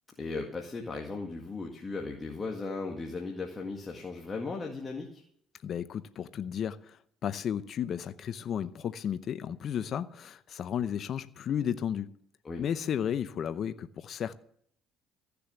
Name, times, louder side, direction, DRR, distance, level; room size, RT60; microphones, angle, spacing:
voice 1, 0.2-5.2 12.4-12.6, left 3 dB, 30° left, 2.0 m, -37 dB
voice 2, 5.6-12.1 12.6-14.3, left 9 dB, 55° left, 0.6 m, -33 dB
15.0 x 6.9 x 7.0 m
supercardioid pair, 80°, 0 cm